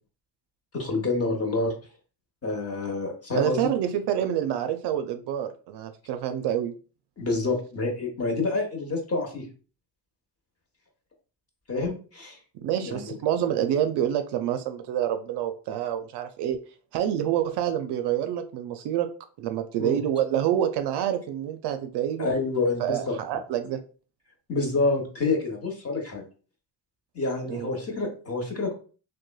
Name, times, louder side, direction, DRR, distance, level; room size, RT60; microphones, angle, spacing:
voice 1, 0.7-1.7 2.4-3.7 7.2-9.5 11.7-12.4 12.8-13.2 19.8-20.0 22.2-23.2 24.5-26.2 27.1-28.7, left 3 dB, 30° left, 2 dB, 1.0 m, -28 dB
voice 2, 3.3-6.7 12.6-16.6 16.9-19.1 19.4-22.3 22.8-23.8 27.5-27.7, right 10 dB, 55° right, 7 dB, 0.5 m, -27 dB
2.9 x 2.2 x 2.2 m, 0.38 s
hypercardioid pair, 50°, 48 cm